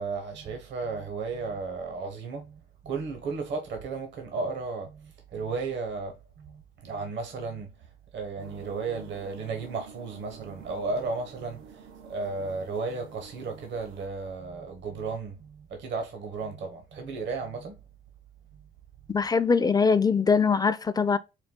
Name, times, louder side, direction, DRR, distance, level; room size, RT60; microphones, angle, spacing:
voice 1, 0.0-7.9 8.1-17.8, right 4 dB, 65° right, 1.0 m, -34 dB
sound 1, 8.4-14.1, right 6 dB, 90° right, 0.7 m, -49 dB
voice 2, 19.1-21.2, left 5 dB, 20° left, 0.4 m, -22 dB
4.6 x 2.2 x 3.6 m
cardioid pair, 90°, 20 cm